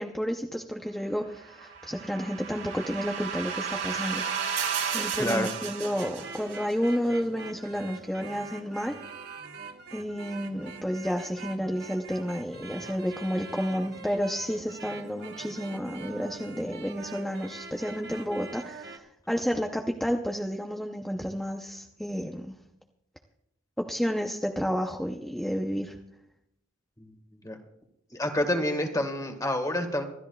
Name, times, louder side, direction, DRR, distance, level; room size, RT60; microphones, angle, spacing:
voice 1, 0.0-4.4 4.9-9.0 9.9-22.5 23.8-26.0, equal, ahead, 2 dB, 0.6 m, -31 dB
sound 1, 1.5-6.7, right 7 dB, 75° right, 3.0 m, -33 dB
voice 2, 5.2-5.5 27.4-27.6 28.1-30.0, left 1 dB, 15° left, 6 dB, 1.6 m, -28 dB
sound 2, 5.2-19.0, right 4 dB, 50° right, 1.2 m, -44 dB
25.5 x 13.5 x 2.3 m, 0.81 s
head